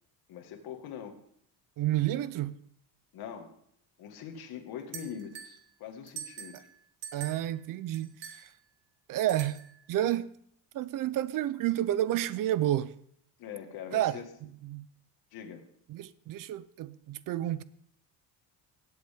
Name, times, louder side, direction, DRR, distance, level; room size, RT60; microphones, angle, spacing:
voice 1, 0.3-1.2 3.1-3.6 4.0-6.7 13.4-14.2 15.3-15.6, left 8 dB, 65° left, 1.8 m, -42 dB
voice 2, 1.8-2.5 7.1-8.5 9.1-9.6 9.9-10.4 10.7-12.9 13.9-14.2 14.6-14.9 15.9-17.6, right 13 dB, 55° right, 0.5 m, -30 dB
sound 1, 4.9-5.6 6.1-6.7 7.0-7.5 7.9-8.4 9.3-9.8, right 7 dB, 80° right, 1.7 m, -43 dB
17.5 x 8.0 x 3.5 m
cardioid pair, 165°, 41 cm